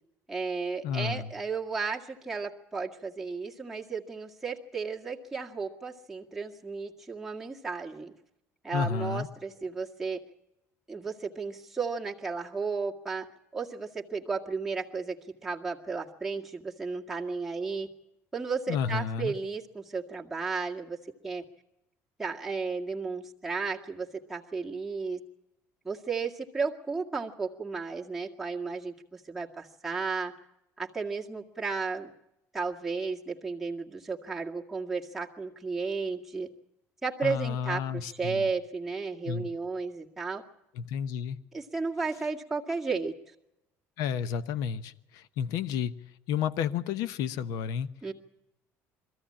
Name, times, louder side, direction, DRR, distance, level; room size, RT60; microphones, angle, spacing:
voice 1, 0.3-8.1 8.6-10.2 10.9-15.2 15.4-17.9 18.3-21.0 21.2-21.4 22.2-25.2 25.8-30.3 30.8-32.1 32.5-36.5 37.0-40.4 41.5-43.1 48.0-48.1, right 4 dB, 5° right, -3 dB, 2.1 m, -34 dB
voice 2, 0.8-1.3 8.7-9.3 18.7-19.3 37.2-38.4 39.3-39.5 40.8-41.4 44.0-45.9 46.3-47.9, left 7 dB, 80° left, 15 dB, 0.9 m, -31 dB
22.0 x 14.5 x 8.7 m, 0.90 s
cardioid pair, 110°, 6 cm